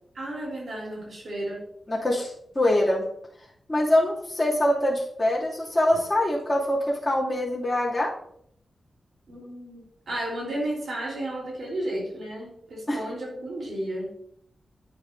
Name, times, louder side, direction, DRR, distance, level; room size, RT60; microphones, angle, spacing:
voice 1, 0.1-1.6 9.3-14.1, right 1 dB, 70° right, -4 dB, 3.3 m, -33 dB
voice 2, 1.9-3.0 3.7-8.1 12.9-13.0, left 1 dB, 15° left, -7 dB, 2.4 m, -24 dB
10.0 x 6.1 x 2.6 m, 0.68 s
wide cardioid pair, 145°, 0 cm